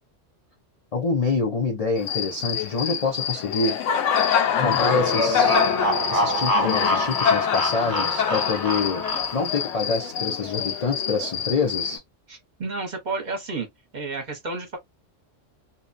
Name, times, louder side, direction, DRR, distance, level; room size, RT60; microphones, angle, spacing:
voice 1, 0.9-3.8 4.6-5.6 6.1-9.0 9.3-12.0, left 4 dB, 60° left, 0.4 m, -26 dB
Cricket, 2.0-12.0, left 8 dB, 80° left, 0.9 m, -26 dB
sound 1, 4.5-9.6, left 1 dB, 20° left, 0.7 m, -25 dB
voice 2, 12.3-13.7 13.9-14.8, right 3 dB, 45° right, 0.8 m, -31 dB
2.6 x 2.1 x 2.4 m
omnidirectional pair, 1.3 m